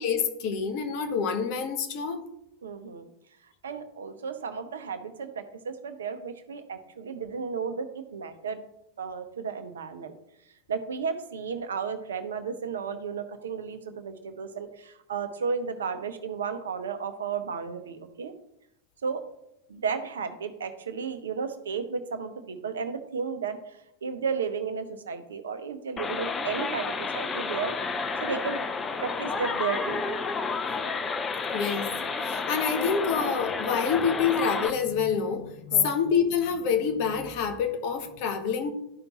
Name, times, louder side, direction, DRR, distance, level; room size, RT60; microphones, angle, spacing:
voice 1, 0.0-2.2 31.5-31.9 32.2-38.7, left 6 dB, 45° left, 7 dB, 1.0 m, -27 dB
voice 2, 2.6-3.1 3.6-8.6 9.0-10.1 10.7-18.3 19.0-19.2 19.7-27.7 28.2-28.6 29.0-30.0 35.7-35.9, right 6 dB, 65° right, 10 dB, 0.7 m, -33 dB
sound 1, 26.0-34.7, left 4 dB, 20° left, 0.6 m, -31 dB
12.5 x 5.1 x 3.0 m, 0.83 s
figure-of-eight pair, 90°, 0 cm